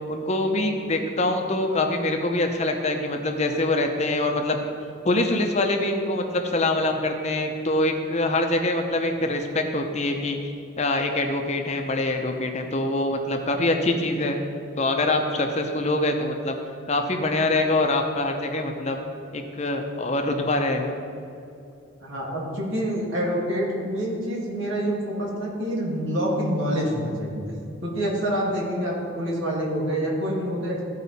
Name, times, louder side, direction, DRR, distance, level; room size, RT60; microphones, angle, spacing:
voice 1, 0.1-4.6 5.0-10.5 10.8-14.4 14.8-16.6 16.9-19.0 19.3-21.0, left 2 dB, 35° left, 4 dB, 0.7 m, -24 dB
voice 2, 22.0-27.4 27.8-30.8, equal, 75° right, -3 dB, 2.2 m, -27 dB
14.0 x 4.7 x 4.1 m, 2.6 s
head